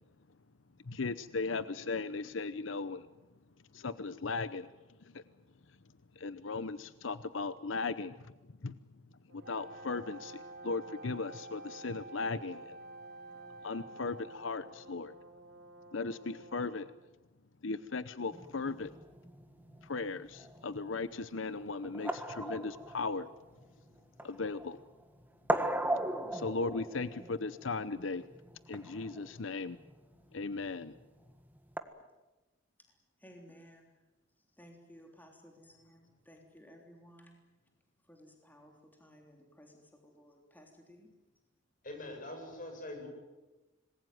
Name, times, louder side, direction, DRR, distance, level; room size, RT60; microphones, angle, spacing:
voice 1, 0.9-3.0 3.7-4.7 5.1-5.2 6.2-8.1 8.6-8.7 9.3-12.8 13.6-15.1 15.9-16.9 17.6-18.9 19.8-23.3 24.2-24.8 26.3-28.2 28.7-29.8 30.3-30.9, left 3 dB, 90° left, 14 dB, 0.8 m, -37 dB
Brass instrument, 9.3-17.0, right 2 dB, 75° right, 3.3 m, -54 dB
Wind instrument woodwind instrument, 9.4-14.9, right 2 dB, 50° right, 1.0 m, -50 dB
sound 1, 18.3-31.8, right 1 dB, 10° right, 1.6 m, -39 dB
voice 2, 33.2-33.9 34.5-37.4 38.0-41.1, equal, 10° left, 2 dB, 3.4 m, -57 dB
voice 3, 41.8-43.1, left 1 dB, 45° left, 3 dB, 7.9 m, -43 dB
26.5 x 20.5 x 9.4 m, 1.1 s
head